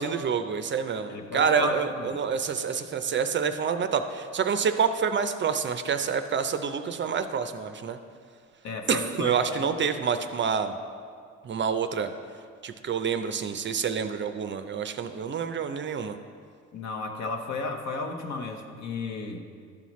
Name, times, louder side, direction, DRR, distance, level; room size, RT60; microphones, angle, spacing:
voice 1, 0.0-8.0 8.9-10.7 11.4-12.1 12.6-16.2, right 6 dB, 40° right, 9 dB, 0.4 m, -27 dB
voice 2, 1.1-2.2 8.6-9.9 16.7-19.4, left 3 dB, 65° left, 3 dB, 0.9 m, -34 dB
11.5 x 5.6 x 3.1 m, 2.1 s
cardioid pair, 90°, 30 cm